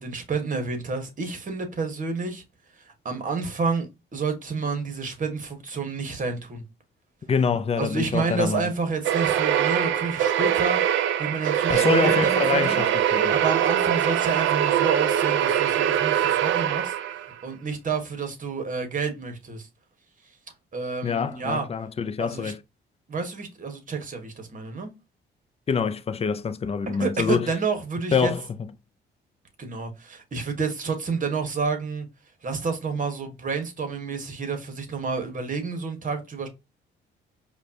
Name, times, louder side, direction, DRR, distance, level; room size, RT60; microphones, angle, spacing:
voice 1, 0.0-2.4 2.8-3.9 4.1-6.6 7.8-10.8 11.2-12.8 13.3-16.9 17.4-19.7 20.7-21.7 22.2-22.5 23.1-24.9 27.0-28.3 29.6-32.1 32.4-36.5, right 4 dB, 40° right, 1.4 m, -29 dB
voice 2, 7.3-8.6 11.7-13.3 21.0-22.6 25.7-27.5 28.1-28.4, left 6 dB, 30° left, 0.5 m, -25 dB
sound 1, 9.0-17.3, right 10 dB, 75° right, 0.5 m, -23 dB
5.0 x 2.4 x 2.8 m
cardioid pair, 90°, 20 cm